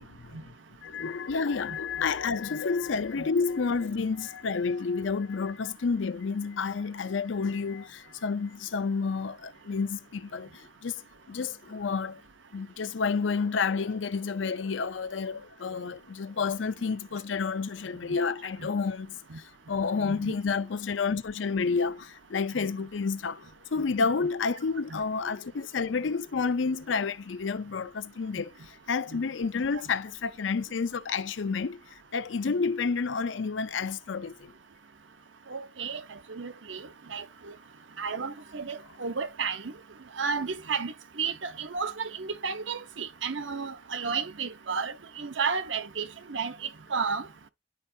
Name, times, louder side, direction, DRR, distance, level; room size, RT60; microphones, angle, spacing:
voice 1, 0.2-0.5 0.8-11.0 11.3-12.2 12.5-34.5, left 5 dB, 90° left, 0.5 m, -30 dB
voice 2, 20.0-20.3 22.6-22.7 24.9-25.0 29.1-29.2 35.5-36.0 36.3-37.2 38.0-39.7 40.2-47.3, right 5 dB, 85° right, 0.9 m, -33 dB
10.5 x 4.5 x 2.7 m
head